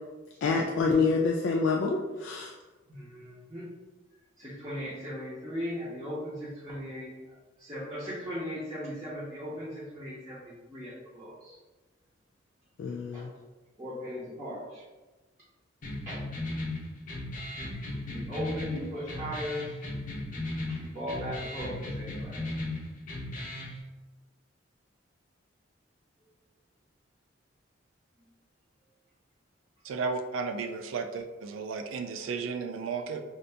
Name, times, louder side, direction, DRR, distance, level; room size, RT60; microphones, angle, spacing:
voice 1, 0.4-2.5 12.8-13.3, left 4 dB, 65° left, 0.3 m, -27 dB
voice 2, 2.9-3.7 4.4-7.1 7.6-11.6 13.1-13.2 13.8-14.8 16.1-16.2 18.1-19.6 20.7-22.5, equal, 15° right, 0.7 m, -38 dB
sound 1, 15.8-23.8, left 1 dB, 40° left, 0.7 m, -36 dB
voice 3, 29.8-33.2, right 4 dB, 75° right, 0.3 m, -34 dB
2.7 x 2.5 x 3.3 m
head